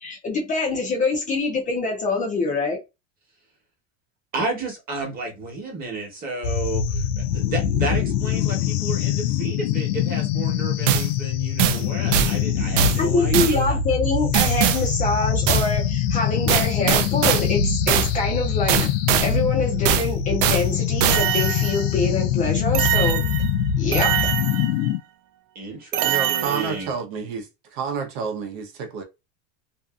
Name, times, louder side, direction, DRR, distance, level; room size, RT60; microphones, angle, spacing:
voice 1, 0.0-2.8 13.0-18.9 19.2-23.2 23.8-24.3, left 3 dB, 20° left, 0.6 m, -25 dB
voice 2, 4.3-13.8 25.5-26.9, right 3 dB, 25° right, 1.1 m, -32 dB
sound 1, 6.4-25.0, left 8 dB, 90° left, 0.5 m, -24 dB
sound 2, 10.9-11.1 11.6-11.8 12.1-12.4 12.8-13.0 13.3-13.6 14.3-14.8 15.5-15.7 16.5-17.5 17.9-18.1 18.7-19.3 19.9-20.1 20.4-20.6 21.0-22.0 22.7-23.5 23.9-24.9 25.9-26.9, right 10 dB, 80° right, 0.5 m, -22 dB
voice 3, 26.0-29.0, right 5 dB, 55° right, 0.8 m, -29 dB
2.7 x 2.4 x 2.3 m
supercardioid pair, 155°, 37 cm